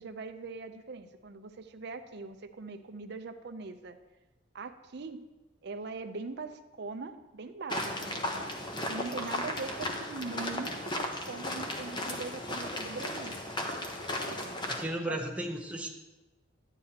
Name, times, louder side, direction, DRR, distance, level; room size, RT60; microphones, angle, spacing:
voice 1, 0.0-4.0 4.5-5.2 5.6-8.4 8.9-13.4 14.2-14.7 15.1-15.2, right 4 dB, 55° right, 8 dB, 0.6 m, -41 dB
sound 1, 7.7-14.8, left 1 dB, 25° left, 0.8 m, -35 dB
voice 2, 14.7-15.9, right 1 dB, 5° right, 0 dB, 0.8 m, -34 dB
10.5 x 9.0 x 2.9 m, 1.1 s
head